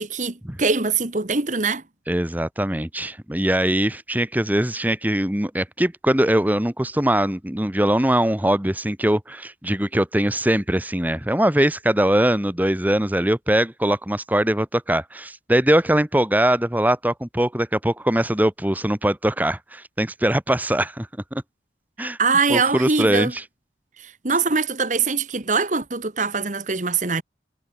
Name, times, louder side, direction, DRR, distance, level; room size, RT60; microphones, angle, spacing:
voice 1, 0.0-1.8 22.2-23.3 24.0-27.2, right 4 dB, 45° right, 1.4 m, -23 dB
voice 2, 2.1-21.4 22.0-22.2 22.5-23.4, right 1 dB, 10° right, 1.2 m, -21 dB
head